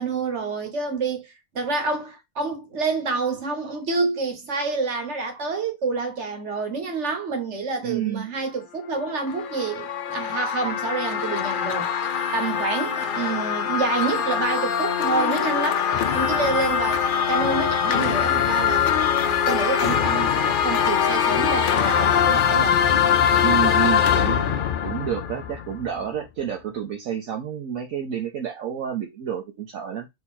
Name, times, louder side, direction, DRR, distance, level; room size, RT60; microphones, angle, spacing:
voice 1, 0.0-15.9 16.1-18.9 19.2-22.8, right 4 dB, 55° right, 1.5 m, -28 dB
voice 2, 7.8-8.3 23.4-30.1, right 9 dB, 70° right, 1.2 m, -30 dB
sound 1, 9.0-26.0, left 8 dB, 75° left, 0.4 m, -22 dB
4.0 x 2.9 x 4.1 m
omnidirectional pair, 1.5 m